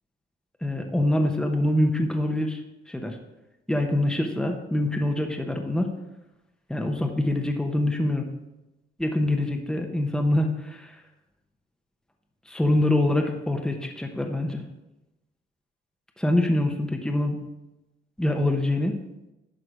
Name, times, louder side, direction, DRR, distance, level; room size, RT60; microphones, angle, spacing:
voice 1, 0.6-2.6 2.9-3.2 3.7-5.9 6.7-8.3 9.0-10.9 12.5-14.6 16.2-17.4 18.2-19.0, left 1 dB, 5° left, 3 dB, 1.0 m, -25 dB
11.5 x 3.8 x 5.0 m, 0.96 s
cardioid pair, 90°, 20 cm